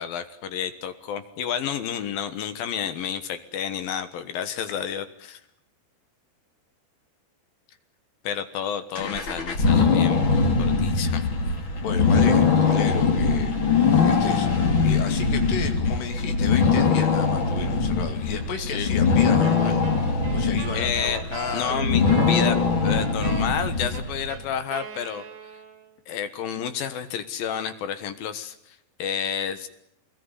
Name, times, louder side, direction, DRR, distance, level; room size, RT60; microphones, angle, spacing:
voice 1, 0.0-5.4 8.2-10.2 10.6-11.2 13.8-14.0 18.6-18.9 20.7-21.2 21.5-25.2 26.1-29.7, left 8 dB, 65° left, 10 dB, 3.0 m, -30 dB
sound 1, 9.0-24.4, left 5 dB, 35° left, 2.8 m, -22 dB
voice 2, 11.8-19.8 20.3-21.8, left 6 dB, 90° left, 6 dB, 4.7 m, -34 dB
Wind instrument woodwind instrument, 19.4-26.0, right 7 dB, 85° right, 4.4 m, -39 dB
24.5 x 20.5 x 9.9 m, 0.76 s
omnidirectional pair, 4.7 m